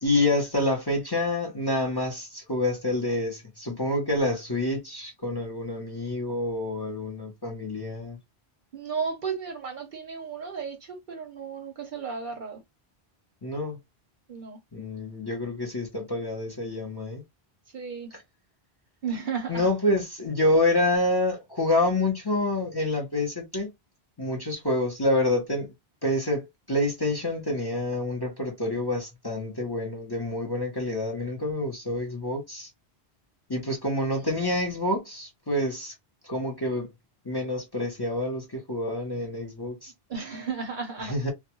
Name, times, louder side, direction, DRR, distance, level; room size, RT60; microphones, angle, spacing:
voice 1, 0.0-8.2 13.4-13.8 14.7-17.2 19.5-23.7 24.2-25.7 26.0-32.7 33.5-35.9 36.2-36.9 37.2-39.9 41.0-41.3, left 1 dB, 25° left, 0.7 m, -27 dB
voice 2, 8.7-12.6 14.3-14.6 17.7-18.1 19.0-19.7 34.2-34.5 40.1-41.3, right 5 dB, 55° right, 0.7 m, -34 dB
2.2 x 2.2 x 2.8 m
omnidirectional pair, 1.1 m